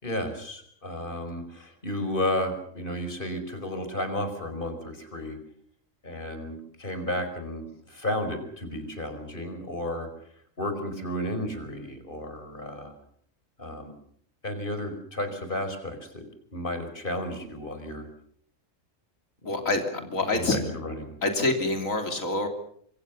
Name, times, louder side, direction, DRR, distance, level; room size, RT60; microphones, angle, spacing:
voice 1, 0.0-5.4 6.0-10.1 10.6-12.9 13.6-13.9 14.4-16.2 16.5-18.1 19.5-19.7 20.0-21.1, left 1 dB, 40° left, 8 dB, 5.0 m, -33 dB
voice 2, 19.5-20.6 21.2-22.5, left 2 dB, 90° left, 5 dB, 3.4 m, -26 dB
26.0 x 24.5 x 6.9 m, 0.66 s
omnidirectional pair, 1.3 m